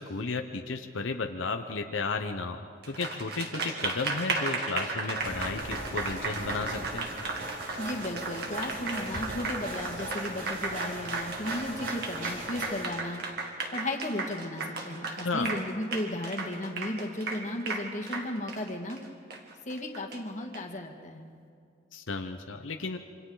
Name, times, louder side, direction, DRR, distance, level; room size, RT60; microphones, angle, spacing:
voice 1, 0.0-7.1 15.2-15.5 21.9-23.0, left 3 dB, 85° left, 5 dB, 0.9 m, -33 dB
Applause, 2.8-20.6, right 3 dB, 55° right, 2.2 m, -35 dB
sound 1, 5.2-12.8, right 1 dB, 80° right, 5.1 m, -39 dB
voice 2, 7.8-13.2 13.7-19.0 19.7-21.3, left 1 dB, 40° left, 2 dB, 1.9 m, -35 dB
27.5 x 25.5 x 4.0 m, 2.4 s
head